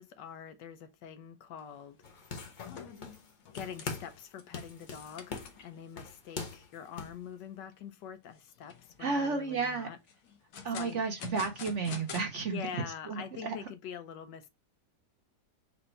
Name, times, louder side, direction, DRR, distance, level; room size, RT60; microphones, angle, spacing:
voice 1, 0.0-2.0 3.5-10.0 10.7-11.0 12.3-14.5, left 8 dB, 80° left, 1.3 m, -45 dB
sound 1, 1.6-1.8 2.1-5.8 6.3-6.4 6.9-7.0 7.4-7.9 8.4-9.0 10.1-12.3, left 7 dB, 60° left, 1.1 m, -46 dB
sound 2, 2.0-3.3 3.6-4.2 4.5-7.2, left 4 dB, 40° left, 0.7 m, -42 dB
voice 2, 9.0-9.9 10.6-13.6, right 4 dB, 55° right, 0.9 m, -33 dB
4.3 x 2.6 x 4.2 m
omnidirectional pair, 1.9 m